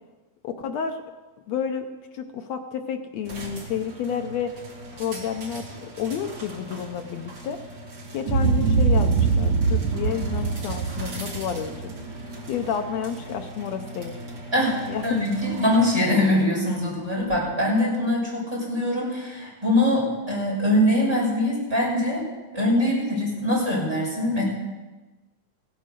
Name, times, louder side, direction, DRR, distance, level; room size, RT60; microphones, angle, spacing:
voice 1, 0.4-1.0 1.5-1.9 2.1-4.5 4.9-7.6 8.1-11.7 12.5-14.2 14.9-15.3, left 8 dB, 70° left, 6 dB, 1.8 m, -30 dB
sound 1, 3.2-17.6, right 1 dB, 45° right, 3.2 m, -40 dB
Boom, 8.3-12.6, right 5 dB, 70° right, 1.7 m, -23 dB
voice 2, 15.0-22.3 22.5-24.4, left 1 dB, 10° right, -6 dB, 6.3 m, -23 dB
16.5 x 9.4 x 6.7 m, 1.2 s
omnidirectional pair, 3.6 m